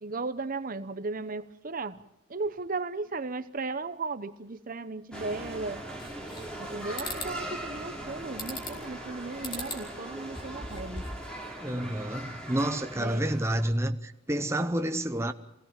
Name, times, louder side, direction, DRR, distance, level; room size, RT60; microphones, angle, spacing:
voice 1, 0.0-2.0 2.3-5.8 6.6-11.1 13.0-13.3, right 3 dB, 45° right, 0.9 m, -36 dB
sound 1, 5.1-13.7, right 1 dB, 5° left, 3.5 m, -40 dB
sound 2, 6.0-6.7 7.0-7.3 8.4-8.9 9.4-9.8 10.2-11.3, left 1 dB, 25° left, 3.5 m, -38 dB
voice 2, 11.6-15.3, right 1 dB, 15° right, 0.8 m, -29 dB
25.5 x 17.0 x 7.5 m
head